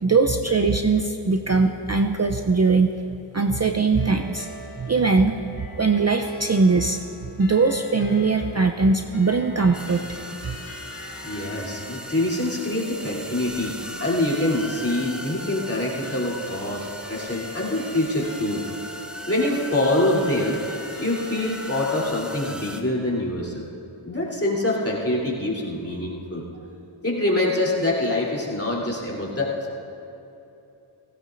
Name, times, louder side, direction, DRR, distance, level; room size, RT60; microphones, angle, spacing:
voice 1, 0.0-2.9 3.3-4.5 4.8-5.4 5.8-10.0 10.5-10.6, right 4 dB, 30° right, 5 dB, 0.6 m, -21 dB
sound 1, 4.0-22.4, left 1 dB, 65° left, 2.9 m, -43 dB
sound 2, 9.7-22.8, equal, ahead, 1.1 m, -38 dB
voice 2, 11.2-18.6 19.3-20.6 21.0-23.6 24.0-26.4 27.0-29.5, left 1 dB, 30° left, -5 dB, 3.3 m, -25 dB
17.5 x 16.5 x 2.6 m, 2.9 s
wide cardioid pair, 40°, 49 cm